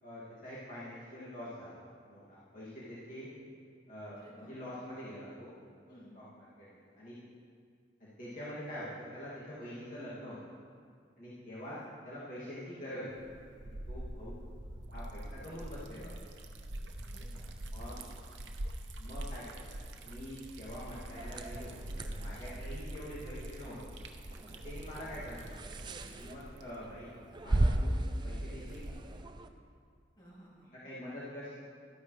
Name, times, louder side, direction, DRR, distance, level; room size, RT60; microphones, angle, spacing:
voice 1, 0.0-3.3 3.9-5.6 5.9-7.2 8.0-10.4 11.2-11.8 12.0-13.1 13.6-14.4 14.9-16.2 17.7-18.0 19.0-24.0 24.5-25.7 26.0-27.1 27.4-29.0 30.7-31.5, equal, 45° left, -10 dB, 2.3 m, -45 dB
voice 2, 4.2-4.8 5.9-6.1 11.6-11.9 17.0-18.1 25.0-25.2 30.2-30.7, equal, 25° left, -7 dB, 2.6 m, -57 dB
Liquid, 13.1-29.2, right 1 dB, 80° right, 0.8 m, -45 dB
sound 1, 21.2-29.5, right 1 dB, 25° right, 0.4 m, -37 dB
13.0 x 10.0 x 3.2 m, 2.1 s
head